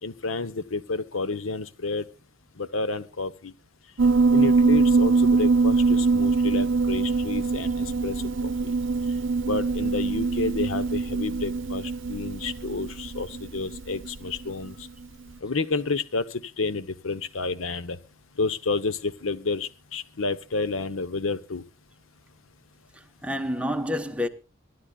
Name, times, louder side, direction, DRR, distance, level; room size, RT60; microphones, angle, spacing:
voice 1, 0.0-2.1 2.6-3.5 4.3-8.7 9.4-14.9 15.4-18.0 18.4-21.6, left 3 dB, 80° left, 1.0 m, -30 dB
Piano, 4.0-14.7, right 4 dB, 65° right, 0.7 m, -23 dB
voice 2, 22.9-24.3, left 1 dB, 5° right, 1.1 m, -29 dB
26.0 x 11.5 x 2.4 m
head